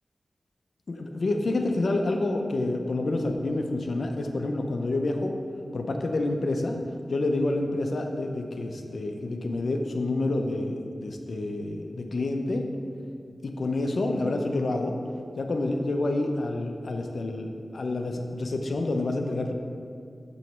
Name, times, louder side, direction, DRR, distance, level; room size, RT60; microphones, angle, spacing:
voice 1, 0.9-5.3 5.7-6.8 7.1-12.7 13.4-15.0 15.4-19.5, left 2 dB, 70° left, 3 dB, 0.6 m, -28 dB
7.5 x 3.1 x 6.1 m, 2.3 s
wide cardioid pair, 70°, 0 cm